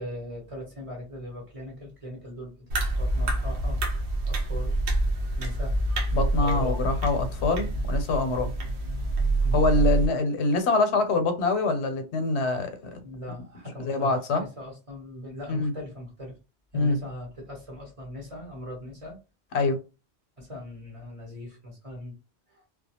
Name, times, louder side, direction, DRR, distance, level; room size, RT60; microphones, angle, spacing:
voice 1, 0.0-3.8 4.2-4.8 5.4-6.9 9.4-9.7 13.0-16.4 16.7-19.2 20.4-22.2 22.5-22.6, left 1 dB, 35° right, 0.8 m, -40 dB
sound 1, 2.7-10.1, right 2 dB, 80° right, 0.9 m, -26 dB
voice 2, 6.1-8.5 9.5-13.0 13.8-14.4 15.5-15.7 16.7-17.0 19.5-19.8, left 3 dB, 80° left, 0.9 m, -25 dB
2.3 x 2.2 x 2.8 m
omnidirectional pair, 1.1 m